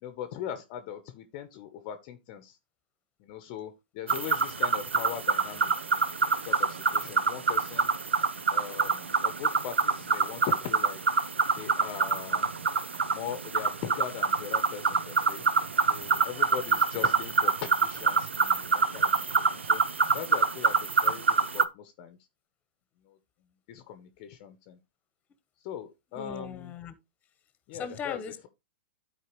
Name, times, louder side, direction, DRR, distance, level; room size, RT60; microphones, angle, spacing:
voice 1, 0.0-2.6 3.2-6.1 6.5-7.9 8.5-11.0 11.5-12.5 13.1-15.4 15.9-19.8 20.1-21.2 21.5-22.2 23.7-24.8 25.6-26.7 27.7-28.2, left 9 dB, 45° left, 0.8 m, -40 dB
sound 1, 4.1-21.6, right 5 dB, 90° right, 0.6 m, -26 dB
voice 2, 26.2-27.0 27.7-28.5, left 7 dB, 25° left, 1.1 m, -38 dB
12.0 x 4.5 x 3.1 m
hypercardioid pair, 115°, 6 cm